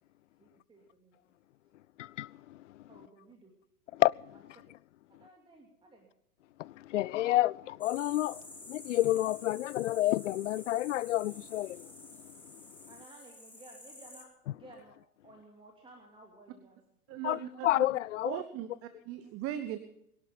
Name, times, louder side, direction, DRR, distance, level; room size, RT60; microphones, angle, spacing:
voice 1, 0.4-1.2 2.9-3.5 4.6-4.7 5.1-6.1 12.9-15.0 15.2-16.8, right 2 dB, 10° right, 2.6 m, -56 dB
voice 2, 2.0-2.6 3.9-4.3 6.6-11.9 17.2-18.4, left 15 dB, 55° left, 0.5 m, -30 dB
sound 1, 7.8-14.2, left 2 dB, 5° left, 3.2 m, -50 dB
voice 3, 17.1-17.9 18.2-19.8, right 11 dB, 30° right, 1.0 m, -39 dB
21.5 x 11.5 x 5.3 m
figure-of-eight pair, 100°, 45 cm